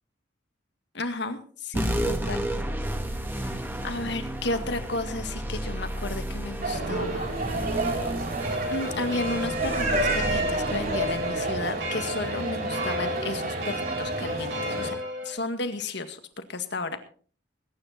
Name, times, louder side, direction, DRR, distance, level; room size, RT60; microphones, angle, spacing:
voice 1, 0.9-2.5 3.4-7.3 8.7-14.9 15.2-16.2 16.5-17.0, left 2 dB, 65° left, 8 dB, 1.9 m, -33 dB
sound 1, 1.7-12.6, right 1 dB, 10° right, 1.8 m, -33 dB
sound 2, 6.6-14.9, right 2 dB, 55° right, 4.9 m, -30 dB
sound 3, 8.4-15.3, left 1 dB, 85° right, 6.1 m, -33 dB
21.0 x 10.0 x 4.2 m, 0.43 s
head